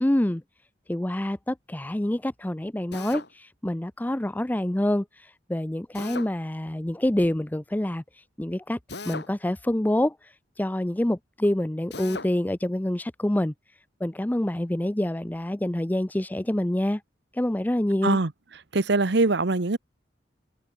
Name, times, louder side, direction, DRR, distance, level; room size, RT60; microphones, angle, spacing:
voice 1, 0.0-0.4 0.9-8.8 9.1-13.5 14.0-17.0 17.3-18.2, left 1 dB, 10° left, 0.5 m, -27 dB
Drill, 2.9-3.3 5.9-6.3 8.9-9.3 11.9-12.3, left 3 dB, 65° left, 5.3 m, -37 dB
voice 2, 18.7-19.8, right 3 dB, 65° right, 1.1 m, -22 dB
head